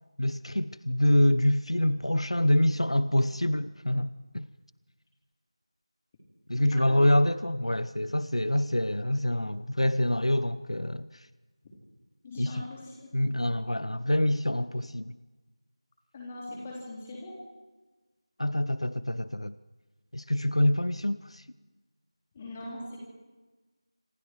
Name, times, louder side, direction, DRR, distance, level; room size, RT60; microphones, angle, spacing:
voice 1, 0.2-4.1 4.3-4.5 6.5-11.1 12.4-12.6 13.1-15.1 18.4-19.5 20.1-21.4, left 1 dB, 80° left, 0.8 m, -26 dB
voice 2, 6.7-7.0 12.2-13.1 16.1-17.4 22.3-23.0, left 2 dB, 15° left, 4.0 m, -41 dB
27.0 x 25.0 x 4.8 m
figure-of-eight pair, 170°, 3 cm